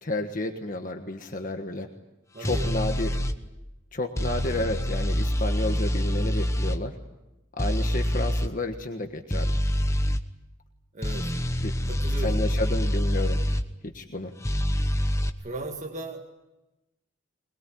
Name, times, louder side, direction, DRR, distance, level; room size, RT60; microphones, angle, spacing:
voice 1, 0.0-1.9 2.4-3.1 3.9-6.9 7.6-9.6 11.6-11.7 12.2-13.4 13.8-14.3, left 2 dB, 45° left, 5 dB, 1.4 m, -31 dB
voice 2, 2.3-2.8 10.9-11.5 11.8-12.5 15.4-16.2, right 2 dB, 40° right, 1 dB, 1.8 m, -37 dB
sound 1, 2.4-3.4 4.2-6.8 7.6-8.5 9.3-10.2 11.0-13.6 14.4-15.3, equal, 15° left, 1.0 m, -26 dB
22.5 x 21.5 x 9.3 m, 1.0 s
head